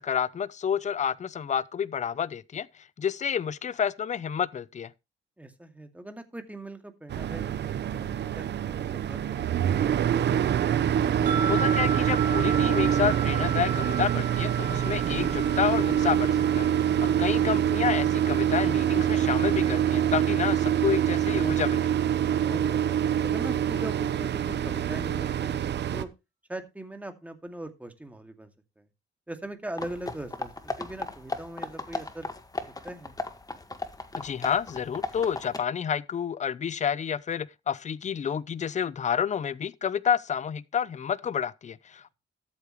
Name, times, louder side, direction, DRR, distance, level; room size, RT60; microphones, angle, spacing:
voice 1, 0.0-4.9 11.4-21.9 34.1-42.1, left 8 dB, 35° left, 0.7 m, -29 dB
voice 2, 5.4-9.4 17.0-17.3 22.4-26.1 26.5-28.5 28.8-28.9 29.3-30.5 30.8-32.3 32.8-33.1, right 1 dB, 5° right, 2.2 m, -40 dB
sound 1, 7.1-26.0, right 10 dB, 60° right, 0.9 m, -25 dB
sound 2, 11.3-20.5, right 5 dB, 45° right, 2.6 m, -36 dB
sound 3, 29.8-35.6, left 2 dB, 20° left, 1.7 m, -36 dB
13.5 x 8.5 x 3.1 m
cardioid pair, 90°, 20 cm